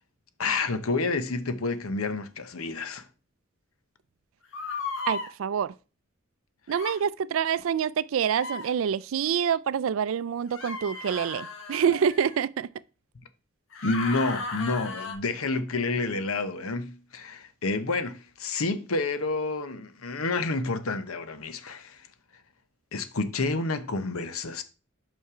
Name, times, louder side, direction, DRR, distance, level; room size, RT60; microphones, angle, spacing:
voice 1, 0.4-3.1 13.8-22.1 22.9-24.6, left 3 dB, 85° left, 0.9 m, -29 dB
sound 1, 4.5-5.3 6.7-7.0 8.3-8.7 10.5-12.4 13.7-15.1, left 4 dB, 65° left, 1.4 m, -35 dB
voice 2, 5.1-5.7 6.7-12.7, right 7 dB, 70° right, 0.3 m, -26 dB
5.5 x 5.5 x 4.9 m
head